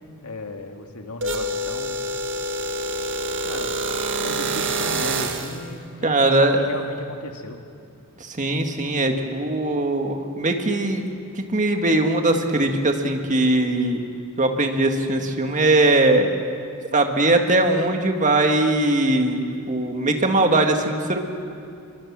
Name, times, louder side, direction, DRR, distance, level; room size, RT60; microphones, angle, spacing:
voice 1, 0.2-2.0 3.4-3.7 4.2-7.6, left 2 dB, 85° left, 4 dB, 2.1 m, -35 dB
sound 1, 1.2-5.6, right 2 dB, 60° right, 1.8 m, -26 dB
voice 2, 6.0-6.6 8.2-11.1 11.3-14.0 14.4-16.3 16.9-21.2, right 2 dB, 35° right, 4 dB, 1.9 m, -20 dB
24.5 x 23.5 x 7.5 m, 2.5 s
head